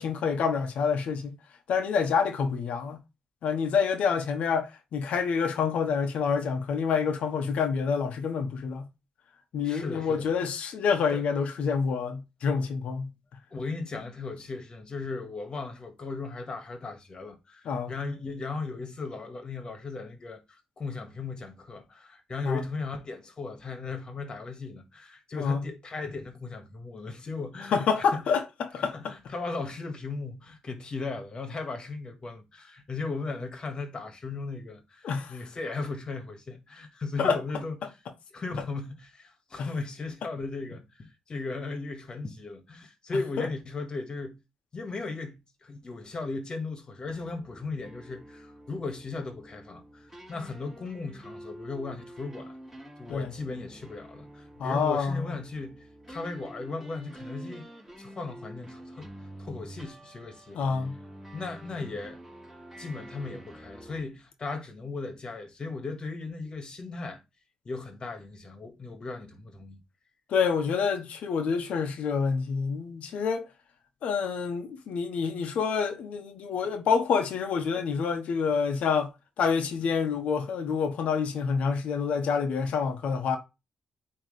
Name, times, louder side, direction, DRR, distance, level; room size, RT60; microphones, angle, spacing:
voice 1, 0.0-1.3 1.7-3.0 3.4-8.9 9.5-13.1 17.6-17.9 22.4-22.7 25.4-25.7 27.7-29.1 35.0-35.3 37.2-37.4 39.6-39.7 43.4-43.5 53.1-53.3 54.6-55.3 60.5-61.0 70.3-73.5 74.0-79.1 79.4-83.4, left 6 dB, 75° left, 1.2 m, -27 dB
voice 2, 9.6-10.5 11.1-11.4 13.5-28.2 28.9-37.8 38.3-44.4 44.7-52.6 53.0-57.7 58.0-59.1 59.4-60.6 61.3-62.2 62.8-67.2 67.6-69.8, left 3 dB, 40° left, 1.8 m, -37 dB
sound 1, 47.1-64.0, right 1 dB, 5° right, 2.9 m, -47 dB
9.2 x 3.3 x 3.3 m
cardioid pair, 85°, 2 cm